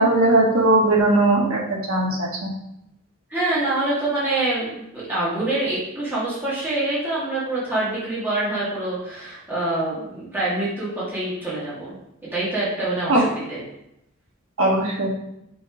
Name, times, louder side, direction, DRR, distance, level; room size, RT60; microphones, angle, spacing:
voice 1, 0.0-2.5 13.1-13.3 14.6-15.1, right 2 dB, 85° right, -2 dB, 1.8 m, -19 dB
voice 2, 3.3-12.0 12.3-13.6, right 2 dB, 10° right, -10 dB, 2.4 m, -25 dB
6.0 x 4.1 x 5.0 m, 0.82 s
head